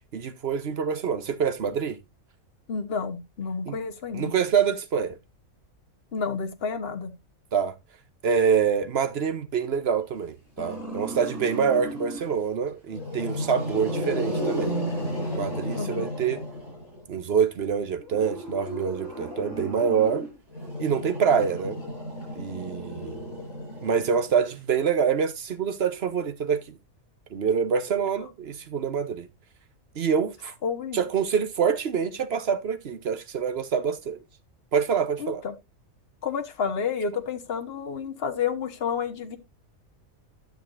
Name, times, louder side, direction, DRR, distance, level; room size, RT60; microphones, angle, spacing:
voice 1, 0.1-2.0 3.7-3.8 4.1-5.2 7.5-7.7 8.2-16.4 17.1-20.3 20.8-21.8 22.3-23.3 23.8-26.6 27.3-29.3 29.9-30.5 30.9-34.2 34.7-35.4, right 7 dB, 50° right, 1.1 m, -26 dB
voice 2, 2.7-4.3 6.1-7.1 15.7-16.1 30.6-31.0 35.2-35.5 36.2-39.4, left 6 dB, 45° left, 1.3 m, -30 dB
Growling, 10.6-12.3 12.9-17.0 18.0-24.5, equal, 65° left, 7.8 m, -33 dB
13.0 x 6.6 x 2.5 m
omnidirectional pair, 1.4 m